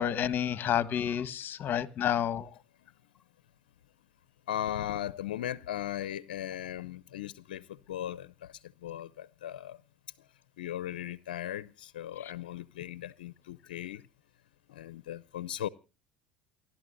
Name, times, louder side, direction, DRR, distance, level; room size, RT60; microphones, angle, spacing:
voice 1, 0.0-2.5, left 9 dB, 45° left, 1.4 m, -29 dB
voice 2, 4.5-8.5 8.8-9.8 10.6-14.0 14.7-15.7, left 12 dB, 85° left, 0.6 m, -37 dB
28.5 x 12.0 x 2.6 m
hypercardioid pair, 75°, 5 cm